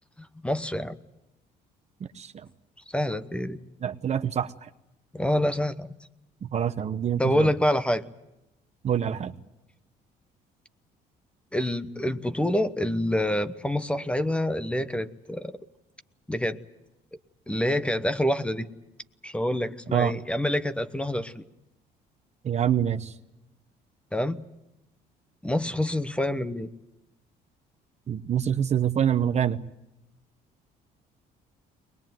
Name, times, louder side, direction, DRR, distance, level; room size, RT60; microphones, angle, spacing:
voice 1, 0.2-1.0 2.9-3.6 5.1-5.9 7.2-8.0 11.5-15.5 16.3-16.6 17.5-18.7 19.2-21.4 24.1-24.4 25.4-26.7, left 1 dB, 5° left, 12 dB, 1.0 m, -27 dB
voice 2, 2.1-2.5 3.8-4.7 6.4-7.5 8.8-9.3 19.9-20.1 22.4-23.1 28.1-29.6, right 9 dB, 40° right, 10 dB, 1.0 m, -26 dB
22.0 x 21.0 x 9.3 m, 0.91 s
cardioid pair, 110°, 17 cm